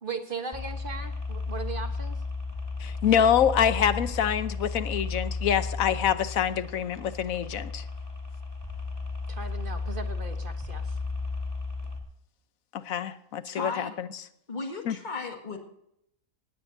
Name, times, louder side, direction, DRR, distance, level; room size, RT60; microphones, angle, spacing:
voice 1, 0.0-2.2 9.3-11.0, right 4 dB, 40° right, 6 dB, 1.2 m, -38 dB
sound 1, 0.5-12.0, left 3 dB, 15° left, 2.8 m, -34 dB
voice 2, 2.8-7.8 12.7-14.1 14.8-15.0, left 9 dB, 70° left, 12 dB, 1.2 m, -26 dB
voice 3, 13.5-14.0 14.5-15.6, left 3 dB, 30° left, 4 dB, 2.0 m, -35 dB
19.0 x 16.5 x 2.7 m, 0.76 s
omnidirectional pair, 1.5 m